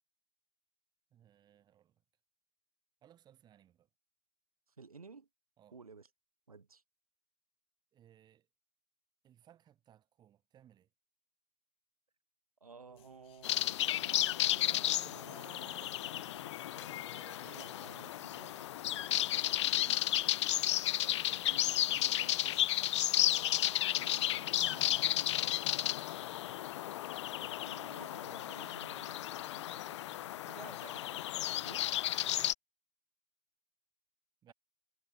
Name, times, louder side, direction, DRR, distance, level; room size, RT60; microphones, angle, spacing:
voice 1, 1.1-2.0 3.0-3.9 5.6-5.8 7.9-8.5 9.2-10.9 16.1-16.4 20.4-20.8 26.3-26.7 30.5-30.8 32.1-32.5 34.4-34.5, right 10 dB, 25° right, 2.2 m, -64 dB
voice 2, 4.8-5.3 5.7-6.1 6.5-6.8 12.6-15.5 17.4-18.5 19.2-20.0 21.0-22.9 23.3-25.5 27.3-29.3 30.4-31.2 31.6-31.9, right 4 dB, 75° right, 1.9 m, -55 dB
sound 1, 12.9-31.4, right 17 dB, 50° right, 1.3 m, -60 dB
sound 2, 13.0-20.4, left 16 dB, 30° left, 3.5 m, -68 dB
sound 3, 13.4-32.5, left 13 dB, 50° left, 0.4 m, -33 dB
figure-of-eight pair, 100°, 19 cm